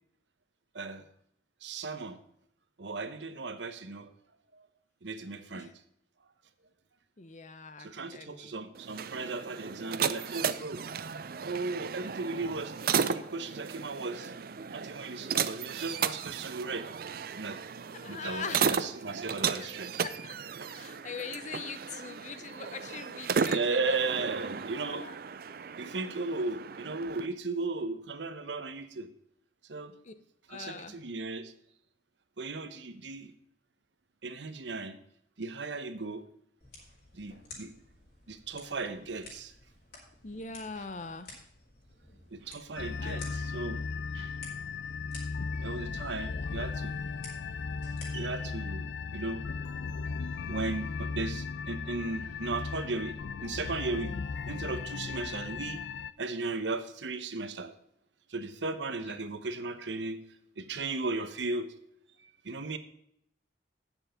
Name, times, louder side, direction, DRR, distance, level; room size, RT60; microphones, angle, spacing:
voice 1, 0.7-1.1 1.6-2.2 2.8-4.1 4.5-4.7 5.0-5.7 7.8-10.8 11.4-12.7 13.0-14.3 14.7-16.9 17.3-17.6 18.1-20.0 20.6-20.7 22.5-22.7 23.5-25.1 25.8-29.1 29.7-30.0 30.5-31.5 32.4-33.3 34.2-35.0 35.4-36.2 37.1-37.7 38.3-39.5 42.3-43.8 44.1-44.4 45.5-47.0 48.1-49.5 50.5-54.1 54.5-55.8 56.2-57.7 58.3-60.2 60.6-61.7 62.2-62.8, right 3 dB, 80° right, 10 dB, 1.0 m, -36 dB
voice 2, 7.2-8.6 17.9-18.9 19.4-19.7 20.0-20.4 20.7-24.3 24.7-25.2 30.0-30.1 30.5-31.0 40.2-41.3 43.0-43.2 46.3-46.6 59.0-59.2, left 4 dB, 40° left, 11 dB, 0.7 m, -42 dB
sound 1, 8.7-27.3, right 6 dB, 55° right, 0.5 m, -35 dB
sound 2, 36.6-48.6, left 3 dB, 60° left, 4.2 m, -53 dB
sound 3, 42.8-56.1, left 4 dB, 75° left, 0.4 m, -36 dB
9.3 x 7.1 x 5.6 m, 0.73 s
head